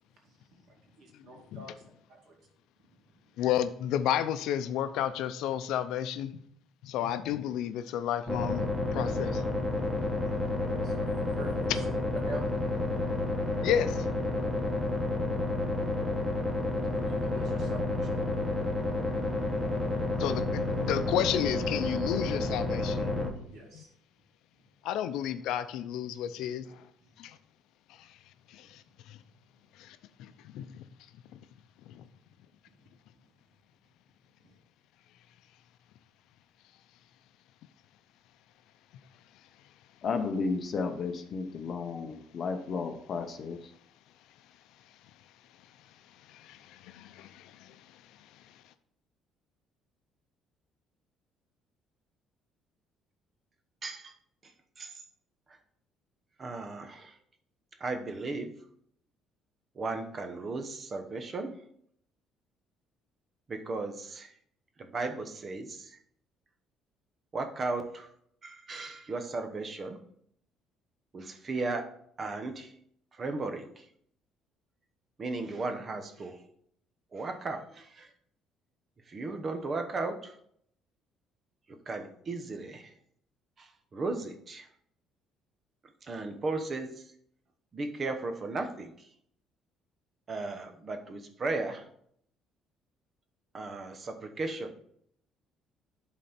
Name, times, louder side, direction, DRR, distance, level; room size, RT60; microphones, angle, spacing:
voice 1, 0.3-2.4 10.2-11.8 12.2-12.5 16.9-18.1 19.8-19.9 23.5-23.9 34.4-34.5, right 3 dB, 55° right, 0 dB, 2.4 m, -47 dB
voice 2, 3.4-6.4 6.8-9.4 13.6-14.1 20.2-23.1 23.7-23.8 24.8-26.9 27.2-27.4 28.0-28.2 28.5-29.2 29.8-30.8 31.3-31.4 31.8-32.0 46.3-48.0, left 10 dB, 80° left, 11 dB, 0.6 m, -32 dB
sound 1, 8.3-23.3, left 2 dB, 15° right, 1.4 m, -30 dB
voice 3, 40.0-43.7, left 4 dB, 40° left, 7 dB, 0.8 m, -33 dB
voice 4, 53.8-54.1 54.4-55.0 56.4-57.2 57.8-58.5 59.8-61.6 63.5-64.3 64.8-66.0 67.3-68.1 68.4-70.0 71.1-71.9 72.2-72.7 73.1-73.8 75.2-76.4 77.1-78.1 79.1-80.4 81.7-82.9 83.6-84.7 86.0-87.0 87.7-89.1 90.3-91.9 93.5-94.7, right 3 dB, 30° right, 7 dB, 0.9 m, -36 dB
11.0 x 4.1 x 4.3 m, 0.68 s
cardioid pair, 145°, 0 cm